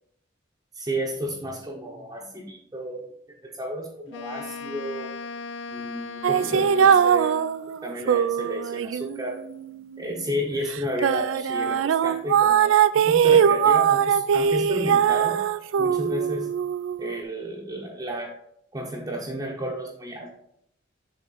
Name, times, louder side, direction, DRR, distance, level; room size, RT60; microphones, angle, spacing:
voice 1, 0.7-3.0 3.5-5.1 5.7-7.3 7.8-9.4 10.0-15.4 15.8-16.5 17.0-18.3 18.7-20.3, equal, 20° right, -3 dB, 0.7 m, -32 dB
Wind instrument woodwind instrument, 4.1-7.6, left 4 dB, 65° left, 0.4 m, -38 dB
sound 1, 6.2-10.2 10.7-17.2, right 8 dB, 90° right, 0.3 m, -21 dB
7.2 x 3.6 x 4.2 m, 0.73 s
head